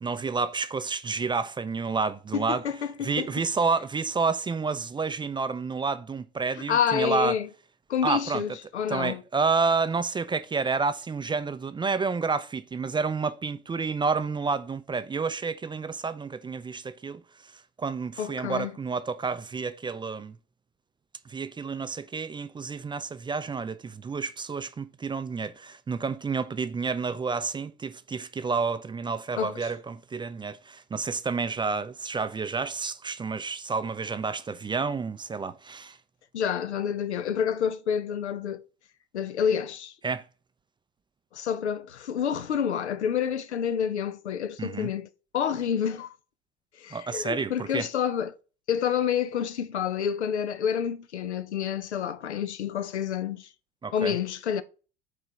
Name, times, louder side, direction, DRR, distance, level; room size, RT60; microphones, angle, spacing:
voice 1, 0.0-2.6 3.0-7.4 8.0-8.4 8.9-17.2 17.8-20.4 21.3-36.0 40.0-40.3 44.6-44.9 46.9-47.9 53.8-54.2, right 4 dB, 15° right, 0.4 m, -29 dB
voice 2, 2.3-3.3 6.7-7.5 7.9-9.2 18.2-18.7 29.4-29.7 36.3-38.6 39.1-39.9 41.3-45.1 45.3-46.1 46.8-48.3 48.7-53.5 53.9-54.6, left 8 dB, 90° left, 0.5 m, -28 dB
4.8 x 3.8 x 5.7 m
figure-of-eight pair, 65°, 33 cm